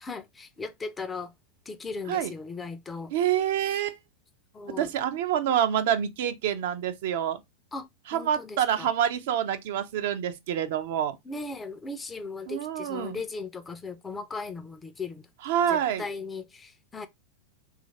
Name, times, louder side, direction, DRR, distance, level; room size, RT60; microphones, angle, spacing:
voice 1, 0.0-1.3 1.7-3.1 4.5-4.9 7.7-8.9 11.2-15.3 15.7-17.1, left 4 dB, 15° left, 0.4 m, -37 dB
voice 2, 3.1-4.0 4.8-7.4 8.1-11.2 12.5-13.2 15.4-16.0, right 10 dB, 55° right, 0.5 m, -27 dB
3.0 x 2.4 x 4.0 m
figure-of-eight pair, 90°, 0 cm